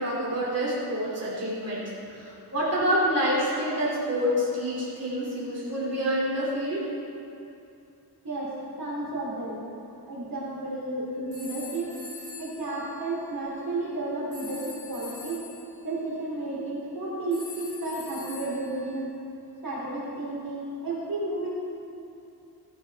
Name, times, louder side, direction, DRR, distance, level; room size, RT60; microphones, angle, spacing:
voice 1, 0.0-1.8 2.2-6.8, equal, 40° right, -8 dB, 3.0 m, -27 dB
voice 2, 8.2-9.6 10.0-11.9 12.4-15.5 15.8-19.2 19.6-21.5, right 2 dB, 55° right, -6 dB, 3.3 m, -32 dB
sound 1, 11.3-13.5 14.3-15.7 17.3-19.0, left 3 dB, 45° left, 3.0 m, -44 dB
15.5 x 10.5 x 3.6 m, 2.7 s
wide cardioid pair, 110°, 40 cm